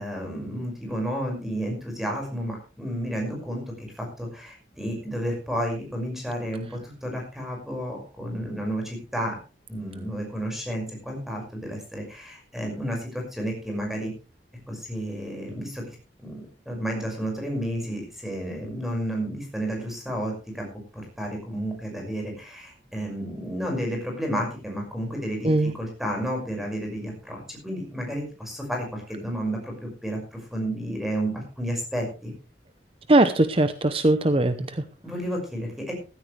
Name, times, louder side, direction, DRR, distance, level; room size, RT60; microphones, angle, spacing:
voice 1, 0.0-9.4 9.7-14.1 14.7-16.0 16.2-20.7 20.9-32.3 35.0-35.9, equal, ahead, 1 dB, 5.7 m, -31 dB
voice 2, 33.1-34.8, right 2 dB, 30° right, 11 dB, 0.8 m, -20 dB
15.5 x 14.0 x 3.3 m, 0.32 s
head